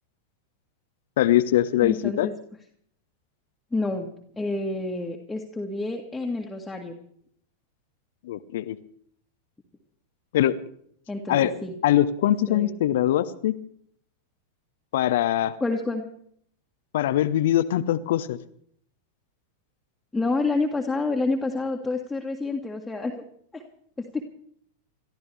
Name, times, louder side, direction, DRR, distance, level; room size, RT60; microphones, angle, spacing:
voice 1, 1.2-2.3 8.2-8.8 10.3-10.5 11.3-11.5 11.8-13.6 14.9-15.5 16.9-18.4, left 12 dB, 55° left, 14 dB, 0.8 m, -22 dB
voice 2, 1.8-2.3 3.7-4.1 4.4-6.9 11.1-11.7 12.5-12.7 15.6-16.0 20.1-23.2 23.5-23.6 24.0-24.2, left 3 dB, 5° left, -1 dB, 1.8 m, -28 dB
29.5 x 13.5 x 3.4 m, 0.65 s
figure-of-eight pair, 90°, 0 cm